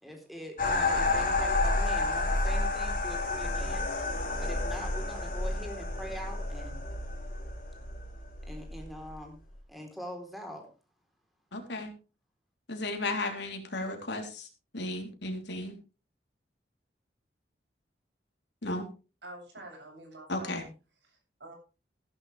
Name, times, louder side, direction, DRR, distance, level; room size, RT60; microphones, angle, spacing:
voice 1, 0.0-4.1 4.4-6.8 8.4-9.4 9.7-10.7, equal, ahead, 2 dB, 3.6 m, -43 dB
sound 1, 0.6-9.5, left 2 dB, 50° left, 4.1 m, -30 dB
voice 2, 11.5-11.9 12.7-14.5 14.7-15.7 18.6-18.9 20.3-20.6, left 2 dB, 80° left, 3 dB, 3.5 m, -34 dB
voice 3, 19.2-20.7 21.0-21.5, right 1 dB, 75° right, 1 dB, 7.6 m, -47 dB
15.5 x 11.5 x 3.4 m, 0.32 s
head